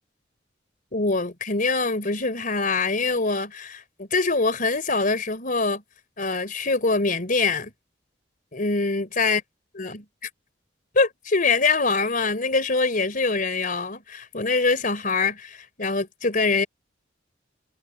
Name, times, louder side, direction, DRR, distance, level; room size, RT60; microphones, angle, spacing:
voice 1, 0.9-5.8 6.2-7.7 8.5-9.4 9.7-10.3 10.9-16.7, left 3 dB, 45° left, 3.9 m, -24 dB
head